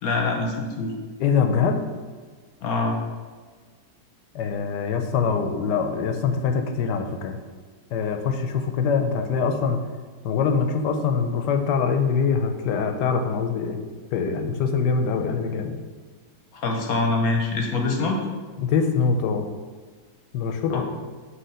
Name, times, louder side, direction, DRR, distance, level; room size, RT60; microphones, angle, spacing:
voice 1, 0.0-0.9 2.6-3.0 16.5-18.2 20.7-20.8, left 3 dB, 65° left, 2 dB, 1.1 m, -24 dB
voice 2, 1.2-1.8 4.3-7.4 7.9-9.8 10.2-13.8 14.1-15.8 18.6-19.5 20.3-20.8, left 5 dB, 85° left, 6 dB, 1.2 m, -23 dB
5.6 x 3.2 x 5.5 m, 1.5 s
omnidirectional pair, 1.8 m